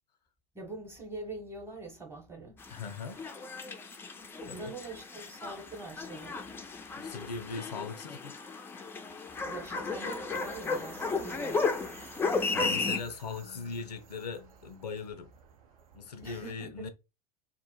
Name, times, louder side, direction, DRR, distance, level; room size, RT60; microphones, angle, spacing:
voice 1, 0.5-2.6 4.4-6.4 9.4-11.6 16.2-16.9, right 2 dB, 10° right, 0.9 m, -44 dB
sound 1, 2.6-13.0, left 4 dB, 10° left, 0.3 m, -34 dB
voice 2, 2.7-3.2 4.5-4.8 7.0-8.3 12.5-15.3 15.9-16.9, left 5 dB, 80° left, 0.4 m, -40 dB
sound 2, 10.3-16.4, right 7 dB, 65° right, 0.6 m, -53 dB
2.1 x 2.0 x 3.0 m
figure-of-eight pair, 80°, 20 cm